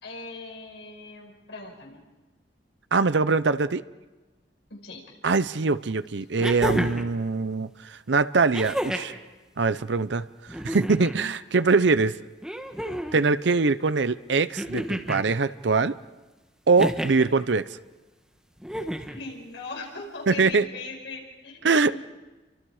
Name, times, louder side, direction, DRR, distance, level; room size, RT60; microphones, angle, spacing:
voice 1, 0.0-2.0 4.7-5.1 19.0-22.0, left 3 dB, 80° left, 1 dB, 5.2 m, -40 dB
voice 2, 2.9-3.8 5.2-9.1 9.6-12.2 13.1-15.9 16.7-17.7 20.3-20.6 21.6-22.0, right 4 dB, 70° right, 14 dB, 0.7 m, -23 dB
sound 1, 5.3-5.4 6.4-7.1 8.5-9.2 10.5-11.2 12.4-13.2 14.6-15.3 16.8-17.3 18.6-19.2 20.5-20.6, equal, 5° right, 1.4 m, -30 dB
30.0 x 24.5 x 4.9 m, 1.2 s
head